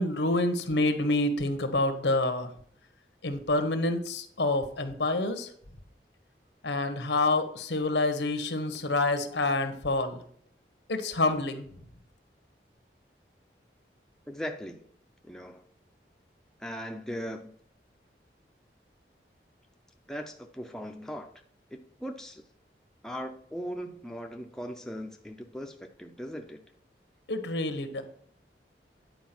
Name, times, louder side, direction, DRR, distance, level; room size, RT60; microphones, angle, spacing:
voice 1, 0.0-2.5 3.2-5.5 6.6-10.2 10.9-11.7 27.3-28.0, left 2 dB, 85° left, 9 dB, 1.1 m, -27 dB
voice 2, 14.3-14.8 15.2-15.7 16.6-17.5 20.1-21.3 21.7-22.4 23.0-26.6, equal, 5° left, 3 dB, 0.6 m, -39 dB
9.3 x 4.8 x 5.9 m, 0.62 s
head